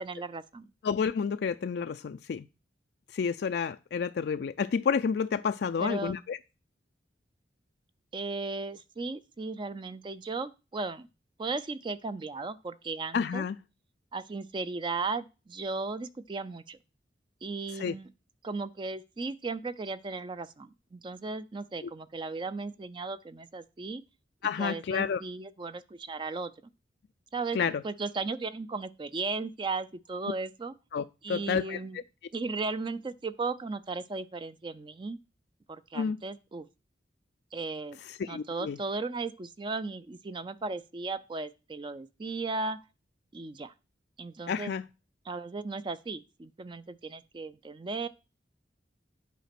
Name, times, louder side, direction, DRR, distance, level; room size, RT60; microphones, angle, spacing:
voice 1, 0.0-0.7 5.8-6.2 8.1-11.1 11.4-13.5 14.1-16.8 17.4-18.1 18.4-24.0 24.6-26.5 27.3-30.7 31.2-32.0 32.3-35.2 35.7-36.7 37.5-42.8 43.3-43.7 44.2-44.7 45.3-48.1, right 3 dB, 25° right, 0.4 m, -36 dB
voice 2, 0.8-2.4 3.1-6.4 13.1-13.6 17.7-17.9 21.8-21.9 24.4-25.2 27.5-27.8 30.9-32.0 35.9-36.2 38.1-38.8 44.5-44.8, left 6 dB, 65° left, 0.3 m, -30 dB
8.3 x 5.0 x 5.8 m
head